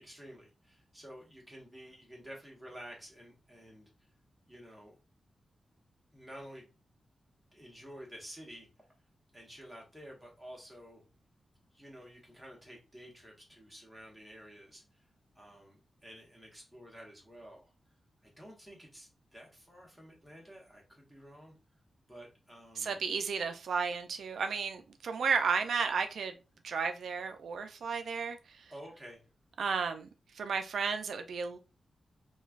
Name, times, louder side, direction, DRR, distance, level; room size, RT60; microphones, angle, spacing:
voice 1, 0.0-3.9 4.5-4.9 6.1-6.7 7.5-8.7 9.3-11.0 11.7-14.8 15.3-17.7 18.2-21.5 22.1-23.0 28.7-29.2, equal, ahead, 1.0 m, -51 dB
voice 2, 22.8-26.3 26.6-28.7 29.6-30.1 30.3-31.6, right 5 dB, 90° right, 0.3 m, -33 dB
3.1 x 2.2 x 2.4 m
wide cardioid pair, 140°, 0 cm